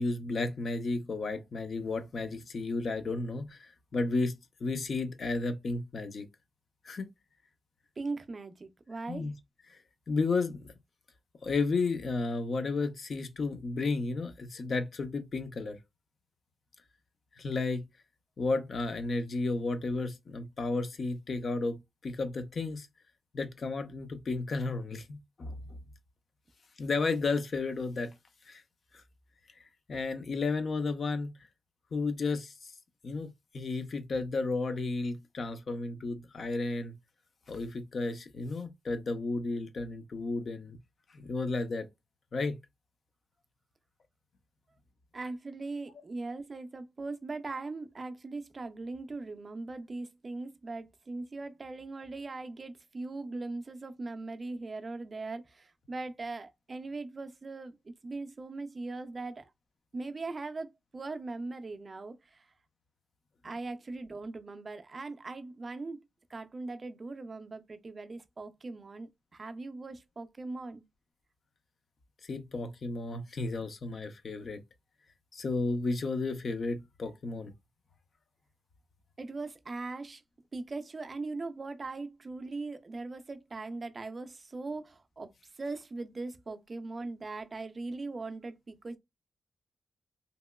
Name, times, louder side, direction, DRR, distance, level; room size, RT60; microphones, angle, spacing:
voice 1, 0.0-6.2 6.8-7.1 9.1-9.3 9.7-9.8 10.1-10.6 11.4-15.8 17.4-17.8 18.4-22.9 23.3-25.6 26.8-28.1 28.5-28.6 28.9-29.0 29.9-31.3 31.9-32.5 33.0-36.9 37.5-40.8 41.1-41.9 42.3-42.5 72.2-74.6 75.3-77.5, left 3 dB, 45° left, 0.5 m, -33 dB
voice 2, 8.0-9.3 45.1-59.5 59.9-62.5 63.4-66.0 66.3-70.8 79.2-80.2 80.5-89.0, right 3 dB, 30° right, 0.4 m, -40 dB
2.9 x 2.9 x 2.2 m
wide cardioid pair, 150°, 0 cm